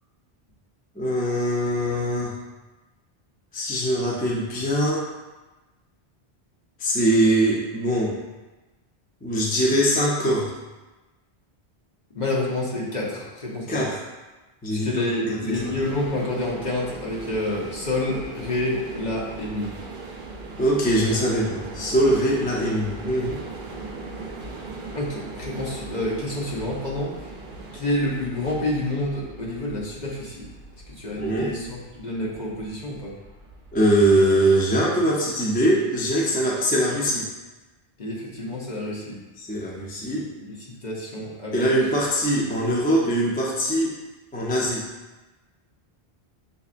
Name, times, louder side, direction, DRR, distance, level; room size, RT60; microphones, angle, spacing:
voice 1, 1.0-2.3 3.5-5.0 6.8-8.1 9.2-10.5 13.7-13.9 14.6-15.7 20.6-23.4 31.2-31.5 33.7-37.3 39.4-40.3 41.5-44.0 44.3-44.8, right 1 dB, 10° left, -4 dB, 0.5 m, -22 dB
voice 2, 12.1-13.9 14.7-19.7 24.9-27.3 27.7-30.5 30.9-33.1 38.0-39.2 40.1-40.2 40.5-41.7, left 1 dB, 45° left, -4 dB, 1.0 m, -28 dB
sound 1, 15.5-34.1, right 3 dB, 60° right, 0.7 m, -39 dB
6.8 x 2.7 x 2.5 m, 1.1 s
omnidirectional pair, 1.0 m